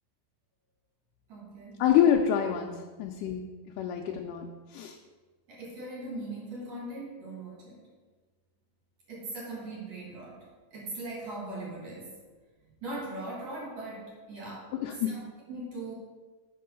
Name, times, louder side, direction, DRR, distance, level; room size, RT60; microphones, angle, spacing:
voice 1, 1.3-1.8 5.5-7.8 9.1-12.2 12.8-15.2 15.5-15.9, right 2 dB, 55° right, -5 dB, 2.9 m, -40 dB
voice 2, 1.8-3.5 3.8-5.0 14.8-15.1, left 9 dB, 80° left, 1 dB, 2.1 m, -26 dB
7.7 x 4.6 x 6.6 m, 1.3 s
omnidirectional pair, 3.9 m